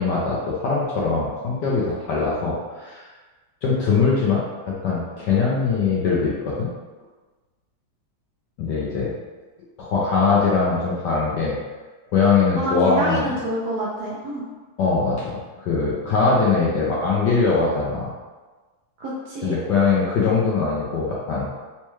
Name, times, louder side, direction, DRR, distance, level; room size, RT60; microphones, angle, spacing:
voice 1, 0.0-3.0 3.6-6.7 8.6-9.1 9.8-11.6 12.1-13.3 14.8-18.1 19.4-21.5, left 4 dB, 70° left, -5 dB, 1.1 m, -21 dB
voice 2, 12.5-14.4 19.0-19.6, equal, 75° right, -5 dB, 0.9 m, -27 dB
4.2 x 2.3 x 3.0 m, 1.3 s
omnidirectional pair, 2.4 m